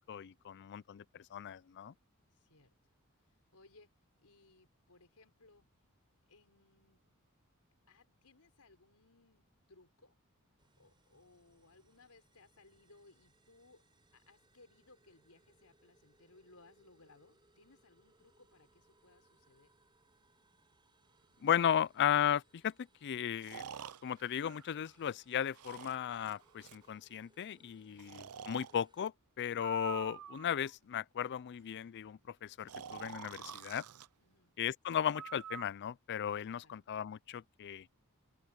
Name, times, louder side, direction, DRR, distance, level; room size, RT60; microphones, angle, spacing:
voice 1, 0.1-1.9 21.4-22.7 23.0-23.6 24.0-33.8 34.6-37.9, left 9 dB, 50° left, 0.4 m, -36 dB
voice 2, 2.3-2.7 3.2-3.9 4.2-5.7 6.3-7.0 7.9-10.2 10.8-13.8 14.1-19.7 27.9-28.1 34.2-34.5 36.6-36.7, left 3 dB, 80° left, 4.5 m, -64 dB
sound 1, 10.6-29.0, right 2 dB, 20° right, 7.3 m, -72 dB
Breathing, 21.5-21.6 23.4-25.1 25.5-26.9 28.0-28.7 29.5-30.7 32.7-34.1 35.1-35.6, right 8 dB, 80° right, 0.6 m, -48 dB
open air
head